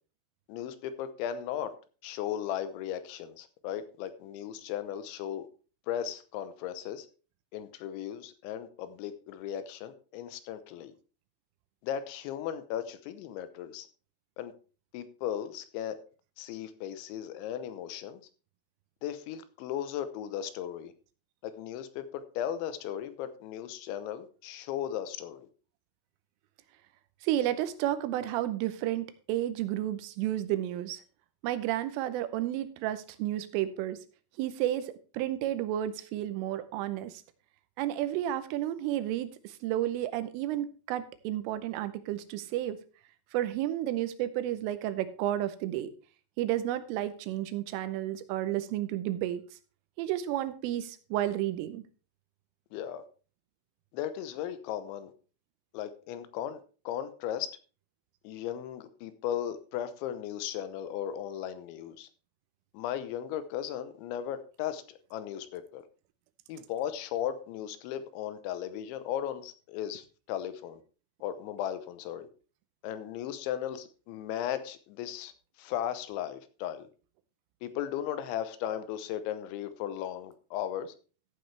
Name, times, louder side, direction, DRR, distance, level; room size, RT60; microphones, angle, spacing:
voice 1, 0.5-1.7 2.0-5.5 5.9-7.1 7.5-10.9 11.8-13.9 14.4-14.5 14.9-16.0 16.4-18.2 19.0-20.9 21.4-25.5 52.7-53.0 53.9-55.1 55.7-57.5 58.2-62.1 62.7-65.8 66.5-70.8 71.2-72.3 72.8-75.3 75.6-76.9 77.6-80.9, left 10 dB, 75° left, 12 dB, 3.0 m, -36 dB
voice 2, 27.2-31.0 31.4-34.0 34.4-37.2 37.8-42.8 43.3-45.9 46.4-49.4 50.0-51.8, right 13 dB, 85° right, 12 dB, 3.3 m, -32 dB
14.5 x 8.4 x 3.3 m, 0.36 s
omnidirectional pair, 5.7 m